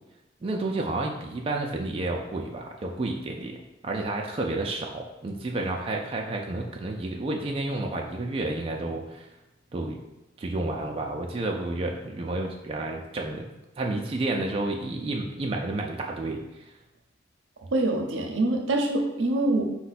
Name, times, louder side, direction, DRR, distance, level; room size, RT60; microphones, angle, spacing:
voice 1, 0.4-3.6 3.8-9.3 9.7-10.0 10.4-13.5 13.8-16.7, right 2 dB, 30° right, 0 dB, 0.3 m, -30 dB
voice 2, 17.6-19.6, right 2 dB, 75° right, 3 dB, 0.6 m, -25 dB
4.7 x 2.2 x 4.1 m, 1.0 s
head